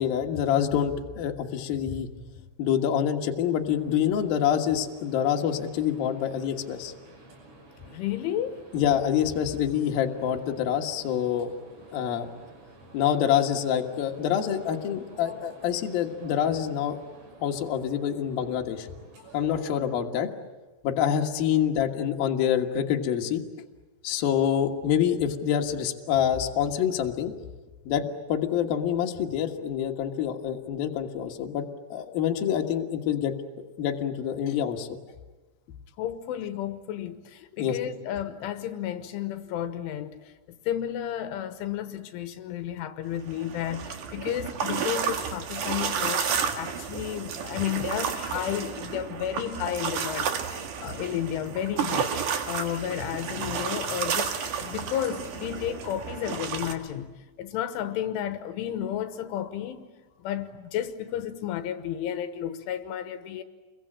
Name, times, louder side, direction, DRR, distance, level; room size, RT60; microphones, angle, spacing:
voice 1, 0.0-2.1 2.6-6.9 8.7-11.5 11.9-12.3 12.9-17.0 17.4-18.9 19.3-20.3 20.8-23.4 24.0-27.3 27.9-31.6 31.9-33.3 33.8-34.9 37.6-37.8, left 9 dB, 60° left, 2.9 m, -26 dB
sound 1, 3.7-20.0, right 2 dB, 85° right, 8.6 m, -50 dB
voice 2, 7.9-8.6 36.0-40.3 40.7-50.3 50.8-52.1 52.4-59.8 60.2-63.4, left 10 dB, 85° left, 3.5 m, -32 dB
sound 2, 43.1-56.7, right 7 dB, 55° right, 2.5 m, -31 dB
29.0 x 22.5 x 8.9 m
omnidirectional pair, 5.6 m